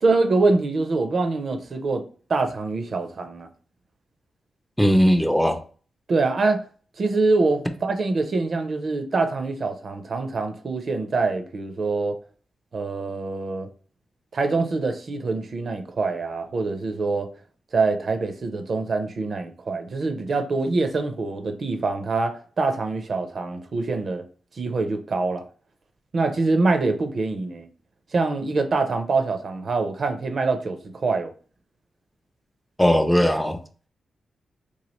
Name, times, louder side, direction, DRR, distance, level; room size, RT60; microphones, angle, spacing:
voice 1, 0.0-2.0 2.3-3.5 6.1-6.6 7.0-12.2 12.7-13.7 14.3-17.3 17.7-24.2 24.5-25.4 26.1-27.7 28.1-31.3, right 3 dB, 60° right, 0.5 m, -24 dB
voice 2, 4.8-5.6 32.8-33.6, equal, 5° left, 0.4 m, -18 dB
3.0 x 2.3 x 3.0 m
supercardioid pair, 50°, 0 cm